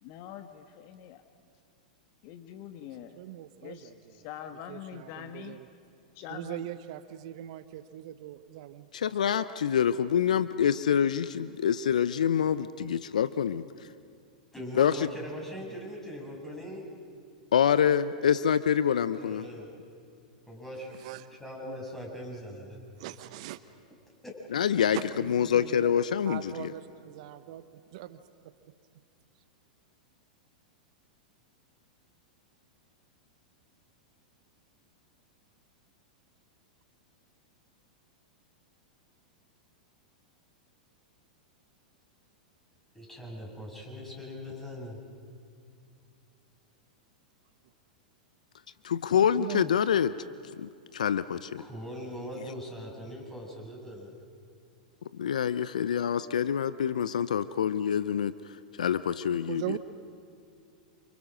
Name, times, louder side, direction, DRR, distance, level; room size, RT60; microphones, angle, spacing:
voice 1, 0.0-1.2 2.2-3.2 3.6-5.6 6.1-6.6, left 10 dB, 50° left, 8 dB, 1.5 m, -44 dB
voice 2, 3.2-3.9 4.7-5.7 6.3-9.4 21.0-21.3 23.0-23.6 24.9-25.9 26.3-27.6 27.9-28.2 49.3-49.7 59.5-59.8, right 14 dB, 55° right, 12 dB, 1.1 m, -40 dB
voice 3, 8.9-13.6 14.8-15.1 17.5-19.5 24.5-26.7 48.8-50.1 50.6-51.6 55.1-58.3 58.8-59.8, left 8 dB, 75° left, 15 dB, 0.7 m, -26 dB
voice 4, 14.5-16.9 19.0-19.7 20.5-21.0 21.4-22.8 24.2-24.3 42.9-45.0 51.6-54.1, equal, 10° left, -2 dB, 8.0 m, -41 dB
29.0 x 28.5 x 6.3 m, 2.5 s
hypercardioid pair, 100°, 4 cm